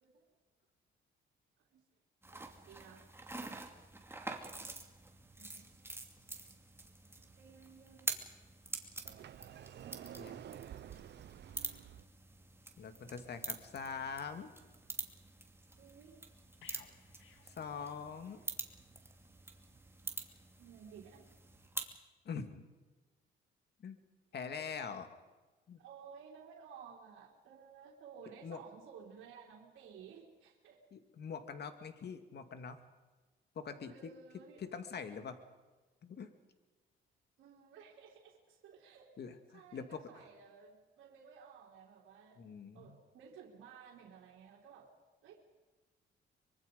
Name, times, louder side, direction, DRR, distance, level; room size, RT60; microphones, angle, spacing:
sound 1, 2.2-22.0, right 2 dB, 10° right, 2.8 m, -46 dB
voice 1, 2.3-3.1 5.4-5.7 7.2-8.1 9.8-10.0 11.5-12.0 15.8-16.2 20.6-21.3 25.8-30.8 33.9-34.6 37.4-39.1 39.5-42.4 42.7-44.9 45.2-45.4, right 6 dB, 85° right, -3 dB, 3.6 m, -56 dB
Sliding door, 9.0-12.0, right 10 dB, 60° right, 0.8 m, -50 dB
voice 2, 12.8-14.5 17.4-18.4 22.2-22.6 23.8-24.0 24.3-25.1 25.7-25.8 28.4-28.6 30.9-32.8 33.6-34.1 34.6-35.4 36.0-36.3 39.2-40.0 42.4-43.0, left 6 dB, 55° left, 8 dB, 2.5 m, -44 dB
sound 2, 16.6-18.5 18.8-19.0, left 7 dB, 80° left, 2.2 m, -61 dB
24.5 x 24.0 x 5.4 m, 1.2 s
cardioid pair, 90°, 20 cm